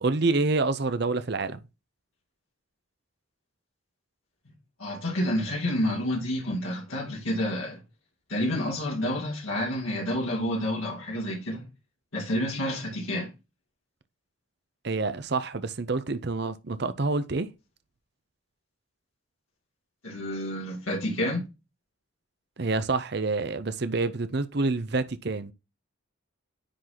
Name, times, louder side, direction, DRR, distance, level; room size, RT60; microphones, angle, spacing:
voice 1, 0.0-1.6 14.8-17.5 22.6-25.5, right 3 dB, 55° right, 0.6 m, -27 dB
voice 2, 4.8-7.8 8.3-11.7 12.1-13.3 20.0-21.4, left 1 dB, 90° left, 2.6 m, -29 dB
10.0 x 4.0 x 2.9 m
head